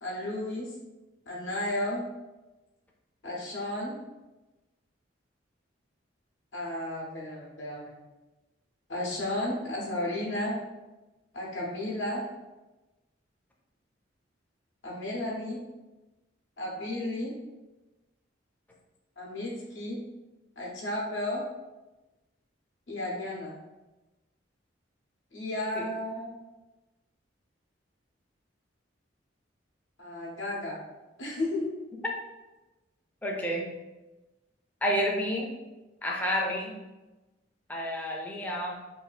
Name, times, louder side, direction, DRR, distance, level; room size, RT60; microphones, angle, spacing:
voice 1, 0.0-0.7 1.3-2.0 3.2-4.0 6.5-7.9 8.9-10.6 11.3-12.3 14.8-15.6 16.6-17.3 19.2-20.0 20.6-21.4 22.9-23.5 25.3-26.3 30.0-30.8 31.2-31.7, left 1 dB, 80° left, -4 dB, 0.7 m, -33 dB
voice 2, 33.2-33.7 34.8-35.5 36.0-36.8 37.7-38.8, equal, 10° left, -2 dB, 0.4 m, -30 dB
2.6 x 2.4 x 3.9 m, 1.1 s
head